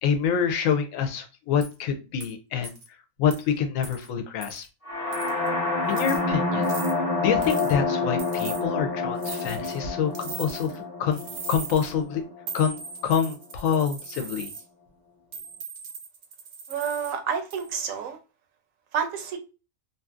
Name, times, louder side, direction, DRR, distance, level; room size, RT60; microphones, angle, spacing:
voice 1, 0.0-2.8 3.2-4.7 5.9-6.7 7.2-11.2 11.5-12.2 12.5-14.5, left 7 dB, 75° left, 1.0 m, -26 dB
sound 1, 1.6-1.7 2.2-2.3 2.6-2.9 3.3-3.4 3.8-4.1 4.4-4.7 5.1-5.5 5.9-6.2 6.6-6.9 7.4-7.8 8.2-8.6 9.2-9.8 10.1-10.8 11.1-11.9 12.5-14.6 15.3-17.1 17.5-17.9, right 5 dB, 55° right, 0.7 m, -39 dB
sound 2, 4.9-12.7, left 3 dB, 35° left, 0.5 m, -28 dB
voice 2, 16.7-18.2 18.9-19.4, right 7 dB, 80° right, 1.0 m, -29 dB
2.6 x 2.6 x 2.3 m
omnidirectional pair, 1.4 m